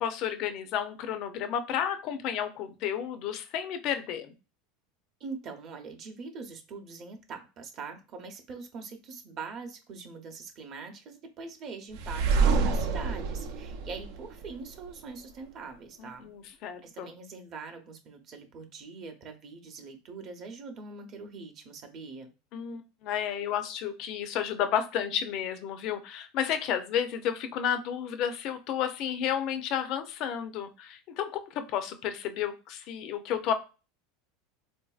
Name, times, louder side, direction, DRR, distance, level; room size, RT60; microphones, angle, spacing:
voice 1, 0.0-4.3 16.0-17.1 22.5-33.5, left 9 dB, 50° left, 9 dB, 0.5 m, -32 dB
voice 2, 5.2-16.3 16.8-22.3, right 4 dB, 40° right, 4 dB, 0.7 m, -43 dB
sound 1, 11.9-14.9, right 4 dB, 80° right, 0.5 m, -27 dB
3.7 x 2.5 x 2.3 m, 0.32 s
supercardioid pair, 140°, 0 cm